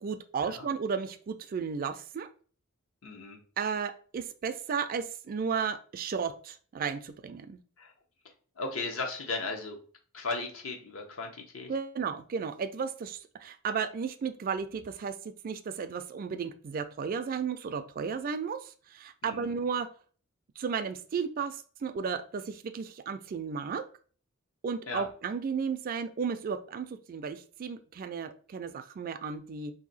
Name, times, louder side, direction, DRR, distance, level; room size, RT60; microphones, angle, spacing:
voice 1, 0.0-2.3 3.6-7.6 11.7-19.9 20.6-23.8 24.6-29.7, right 6 dB, 40° right, 9 dB, 0.3 m, -34 dB
voice 2, 3.0-3.4 7.8-7.9 8.6-9.8 10.1-11.7 19.2-19.5 24.9-25.1, left 3 dB, 70° left, 3 dB, 0.8 m, -36 dB
2.8 x 2.6 x 3.9 m, 0.42 s
head